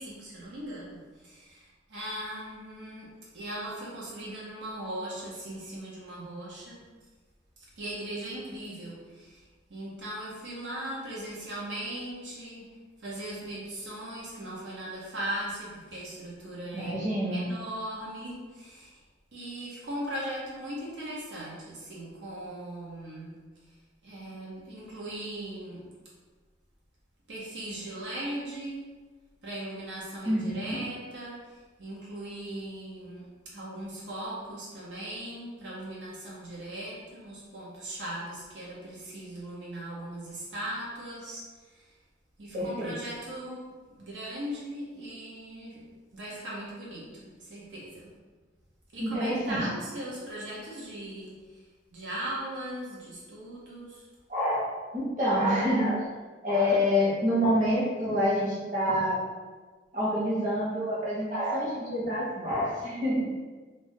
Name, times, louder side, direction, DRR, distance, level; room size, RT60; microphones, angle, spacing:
voice 1, 0.0-6.8 7.6-9.4 9.7-17.0 17.3-19.0 19.3-23.3 24.0-25.9 27.3-28.9 29.4-41.9 42.4-45.9 46.1-48.1 48.9-51.6 51.9-54.1, right 1 dB, 85° right, -6 dB, 0.8 m, -39 dB
voice 2, 16.7-17.5 30.2-30.8 42.5-42.9 49.0-49.7 54.3-54.7 54.9-56.0 56.4-59.2 59.9-63.5, equal, 45° right, -7 dB, 1.0 m, -27 dB
2.6 x 2.5 x 3.7 m, 1.4 s
head